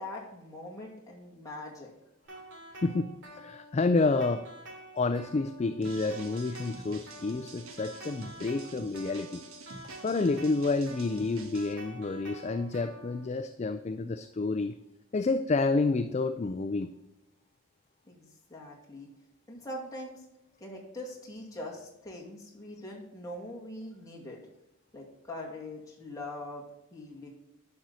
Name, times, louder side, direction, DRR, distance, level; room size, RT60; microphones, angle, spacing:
voice 1, 0.0-1.9 18.1-19.1 19.5-20.2 20.6-24.4 24.9-26.6 26.9-27.3, left 1 dB, 15° left, -3 dB, 2.2 m, -42 dB
sound 1, 2.2-13.3, right 1 dB, 55° right, 2.8 m, -48 dB
voice 2, 2.8-4.5 4.9-9.4 10.0-14.7 15.1-16.9, left 3 dB, 30° left, 9 dB, 0.3 m, -29 dB
sound 2, 5.8-11.7, right 3 dB, 75° right, 1.3 m, -49 dB
10.5 x 6.2 x 4.1 m, 0.94 s
head